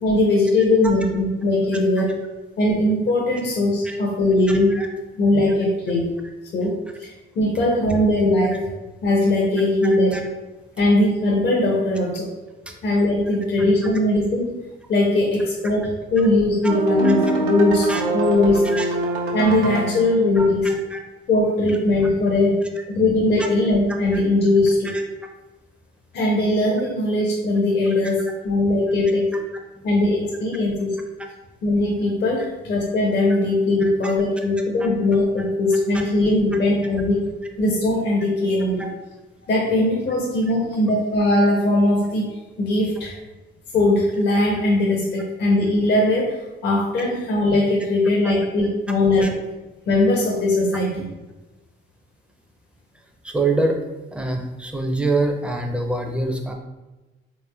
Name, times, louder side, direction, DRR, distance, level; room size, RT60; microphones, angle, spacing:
voice 1, 0.0-2.1 2.6-4.7 5.2-6.2 6.5-7.1 7.4-8.7 9.0-10.2 10.8-12.3 12.8-14.6 14.9-18.7 19.3-20.7 21.3-25.0 26.1-29.3 29.8-30.9 31.6-37.3 37.6-38.9 39.4-42.3 42.6-43.1 43.7-49.4 49.9-51.0, left 2 dB, 60° left, -3 dB, 0.7 m, -20 dB
voice 2, 4.5-4.9 10.1-10.2 12.7-12.8 16.6-16.7 17.0-17.1 17.9-18.0 18.6-18.9 20.4-21.0 24.1-24.2 24.8-25.0 33.8-34.1 34.8-34.9 35.9-36.0 38.8-38.9 48.2-48.3 49.2-49.3 53.2-53.8 54.1-56.5, right 2 dB, 5° right, 3 dB, 0.5 m, -26 dB
sound 1, 16.7-20.2, right 3 dB, 90° right, 0.7 m, -23 dB
3.6 x 3.1 x 2.3 m, 1.1 s
cardioid pair, 90°, 20 cm